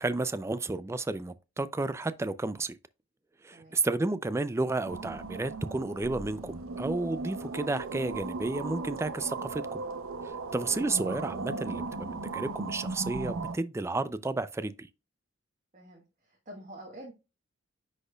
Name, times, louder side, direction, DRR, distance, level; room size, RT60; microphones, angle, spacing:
voice 1, 0.0-2.8 3.4-9.8 10.2-14.9, right 2 dB, 15° right, 0.3 m, -32 dB
sound 1, 4.8-13.6, right 3 dB, 85° right, 0.6 m, -37 dB
voice 2, 15.7-17.1, right 1 dB, 40° right, 1.3 m, -47 dB
10.0 x 4.2 x 2.3 m
head